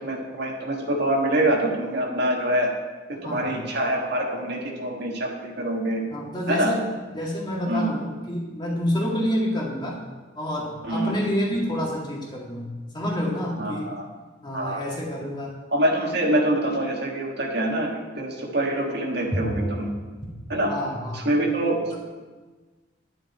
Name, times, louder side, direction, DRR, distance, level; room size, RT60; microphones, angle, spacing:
voice 1, 0.0-2.7 3.1-6.0 6.5-6.7 7.7-8.0 10.8-11.1 13.6-14.0 14.5-14.8 15.7-19.9 20.5-20.7 21.1-22.0, right 1 dB, 55° right, 0 dB, 1.6 m, -25 dB
voice 2, 6.1-6.8 7.1-10.0 10.3-13.9 14.4-15.5 19.3-19.4 20.7-21.3, equal, 25° left, -3 dB, 2.0 m, -28 dB
10.0 x 10.0 x 4.3 m, 1.3 s
head